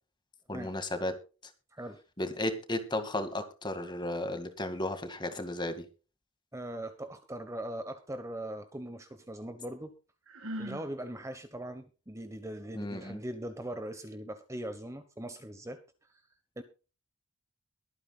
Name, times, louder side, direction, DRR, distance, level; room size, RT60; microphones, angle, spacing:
voice 1, 0.5-1.2 2.2-5.9 12.7-13.2, left 1 dB, 20° left, 8 dB, 2.0 m, -34 dB
voice 2, 6.5-9.9 10.6-16.2 16.6-16.7, right 1 dB, 15° right, 9 dB, 1.1 m, -40 dB
Sigh, 10.3-10.9, equal, 65° right, 1.9 m, -39 dB
22.5 x 9.3 x 2.3 m, 0.33 s
head